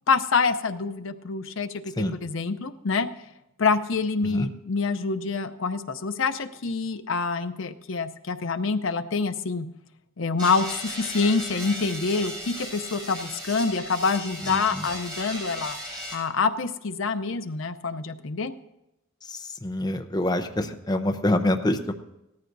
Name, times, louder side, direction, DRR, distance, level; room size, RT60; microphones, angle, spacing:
voice 1, 0.1-1.9 2.2-3.1 3.6-9.7 10.2-15.8 16.1-18.5, left 4 dB, 75° left, 10 dB, 0.6 m, -26 dB
sound 1, 10.4-16.1, equal, 25° right, 4.6 m, -36 dB
voice 2, 14.4-14.9 19.2-21.9, left 1 dB, 20° left, 6 dB, 0.6 m, -26 dB
17.5 x 14.0 x 2.6 m, 0.91 s
head